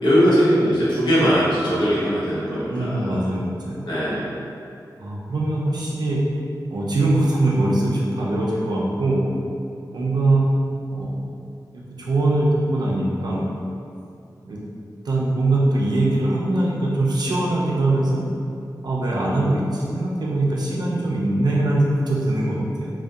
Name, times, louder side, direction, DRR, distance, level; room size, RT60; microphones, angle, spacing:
voice 1, 0.0-3.2 3.9-4.3, equal, 80° left, -10 dB, 0.8 m, -20 dB
voice 2, 2.7-3.9 5.0-6.2 6.7-9.3 9.9-10.5 10.9-11.2 11.7-13.5 14.4-14.6 15.0-18.2 18.8-22.9, right 2 dB, 70° right, -4 dB, 0.4 m, -22 dB
2.6 x 2.1 x 2.3 m, 2.6 s
wide cardioid pair, 95°, 7 cm